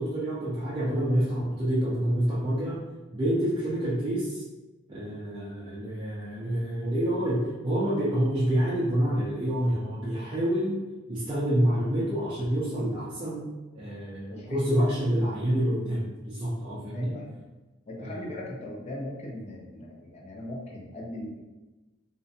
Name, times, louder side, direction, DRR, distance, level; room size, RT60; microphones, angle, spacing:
voice 1, 0.0-2.8 3.1-4.4 4.9-10.8 11.1-13.5 13.7-17.1 18.0-18.3, equal, 25° right, -9 dB, 0.4 m, -27 dB
voice 2, 14.3-15.0 16.5-16.6 16.9-17.3 17.9-21.4, left 1 dB, 35° left, -2 dB, 0.4 m, -39 dB
2.5 x 2.1 x 2.6 m, 1.1 s
head